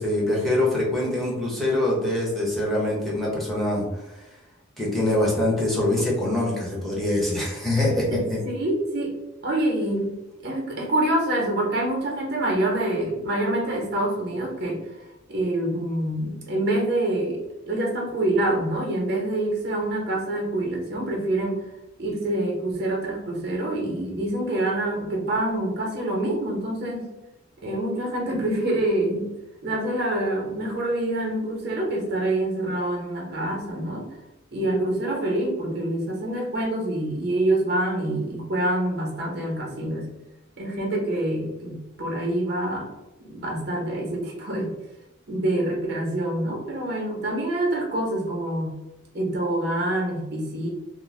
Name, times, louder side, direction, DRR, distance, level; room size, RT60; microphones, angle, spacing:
voice 1, 0.0-3.8 4.8-8.0 8.3-8.4, left 1 dB, ahead, -5 dB, 0.7 m, -24 dB
voice 2, 8.1-9.2 9.4-14.8 15.3-21.6 22.0-27.1 27.6-29.3 29.6-34.1 34.5-40.1 40.6-42.9 43.2-44.7 45.3-48.8 49.1-50.7, right 1 dB, 55° right, 0 dB, 0.7 m, -26 dB
2.4 x 2.1 x 3.1 m, 0.98 s
head